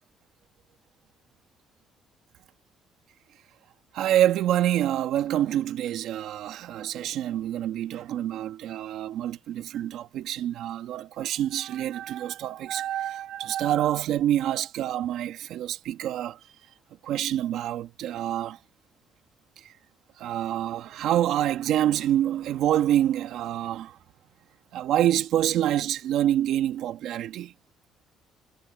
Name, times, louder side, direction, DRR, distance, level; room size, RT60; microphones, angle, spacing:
voice 1, 3.9-16.4 17.0-18.6 20.2-24.0 24.7-27.5, right 12 dB, 70° right, 1.8 m, -26 dB
cardioid pair, 125°, 0 cm